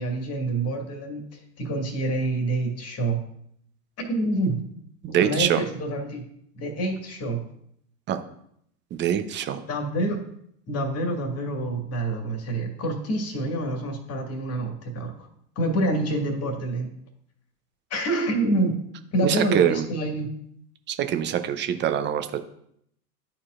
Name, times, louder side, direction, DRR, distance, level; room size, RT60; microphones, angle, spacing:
voice 1, 0.0-3.2 4.0-4.6 5.2-6.2 6.5-7.4 9.7-10.2 10.7-15.1 15.6-16.9 17.9-18.8 19.1-20.3, right 2 dB, 30° left, 3 dB, 1.8 m, -27 dB
voice 2, 5.0-5.6 8.1-8.2 8.9-9.6 19.2-19.8 20.9-22.4, right 10 dB, 25° right, 8 dB, 0.5 m, -24 dB
12.0 x 4.4 x 2.5 m, 0.70 s
hypercardioid pair, 95°, 48 cm